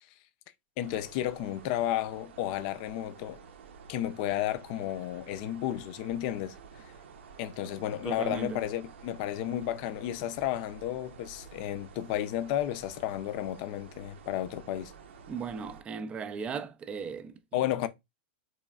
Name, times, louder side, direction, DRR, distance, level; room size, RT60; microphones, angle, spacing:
voice 1, 0.8-3.4 3.9-6.9 7.4-14.9 17.5-17.9, left 12 dB, 45° left, 0.4 m, -32 dB
sound 1, 0.8-15.8, right 6 dB, 85° right, 0.7 m, -51 dB
voice 2, 8.0-8.6 15.3-17.3, right 5 dB, 20° right, 0.4 m, -37 dB
4.0 x 3.1 x 2.3 m
supercardioid pair, 145°, 6 cm